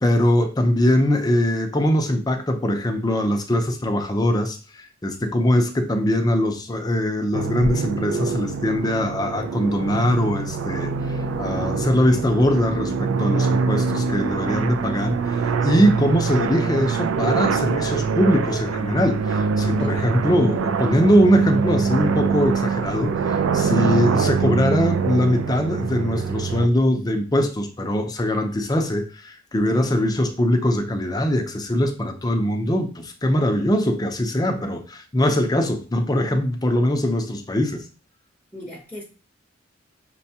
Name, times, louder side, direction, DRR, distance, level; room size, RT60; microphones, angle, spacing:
voice 1, 0.0-37.8, left 1 dB, 20° left, 0.5 m, -22 dB
sound 1, 7.3-26.7, right 5 dB, 85° right, 0.4 m, -24 dB
voice 2, 19.7-20.1 38.5-39.0, left 2 dB, 15° right, 0.8 m, -37 dB
6.2 x 2.2 x 2.7 m
head